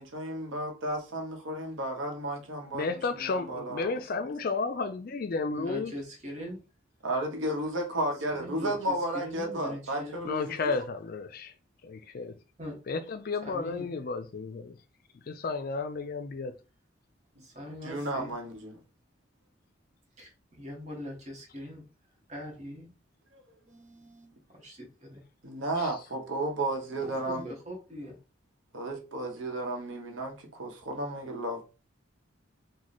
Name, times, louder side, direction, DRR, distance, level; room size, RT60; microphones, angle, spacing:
voice 1, 0.0-4.0 7.0-10.5 17.8-18.8 23.3-23.4 25.4-27.5 28.7-31.6, right 1 dB, 80° right, 0.9 m, -33 dB
voice 2, 2.7-5.9 10.3-11.5 11.8-12.3 12.9-14.8 15.3-16.5, left 4 dB, 45° left, 0.4 m, -32 dB
voice 3, 5.5-6.6 8.4-8.7 9.2-10.3 12.6-12.8 13.4-13.9 17.4-18.3 20.2-20.3 20.6-21.8 22.3-22.9 23.7-24.3 24.6-25.2 27.0-28.2, equal, 35° right, 1.2 m, -41 dB
3.1 x 2.2 x 4.0 m
head